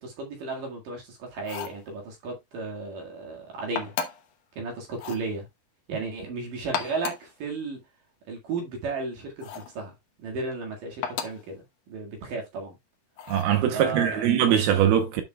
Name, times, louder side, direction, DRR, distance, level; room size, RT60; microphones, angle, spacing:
voice 1, 0.0-3.9 4.6-5.5 5.9-7.8 8.3-9.9 10.2-12.7 13.7-14.3, right 3 dB, 55° right, 3.2 m, -34 dB
sound 1, 1.4-1.8 3.8-4.3 4.9-5.3 6.6-7.3 9.4-9.8 11.0-11.5 13.2-13.6, left 7 dB, 65° left, 2.4 m, -34 dB
voice 2, 13.3-15.2, right 10 dB, 75° right, 2.6 m, -22 dB
10.5 x 7.1 x 2.3 m
omnidirectional pair, 5.0 m